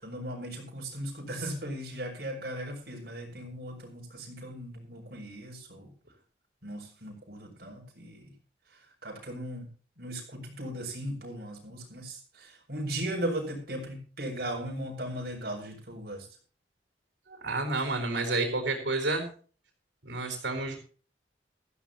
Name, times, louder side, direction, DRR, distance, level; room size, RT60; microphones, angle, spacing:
voice 1, 0.0-5.9 6.6-8.3 9.0-9.7 10.0-16.2, right 1 dB, 60° right, 0 dB, 6.1 m, -37 dB
voice 2, 17.4-19.3 20.0-20.8, right 2 dB, 90° right, 4 dB, 4.6 m, -30 dB
16.5 x 14.5 x 3.0 m, 0.40 s
head